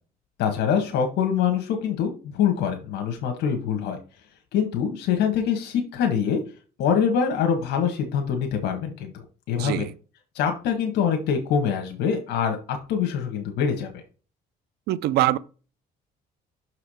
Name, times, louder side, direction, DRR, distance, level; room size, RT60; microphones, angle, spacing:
voice 1, 0.4-4.0 4.5-6.4 6.8-9.8 10.3-13.9, left 7 dB, 80° left, 1.5 m, -24 dB
voice 2, 9.6-9.9 14.9-15.4, right 14 dB, 75° right, 0.5 m, -23 dB
6.3 x 4.8 x 4.9 m
cardioid pair, 110°, 17 cm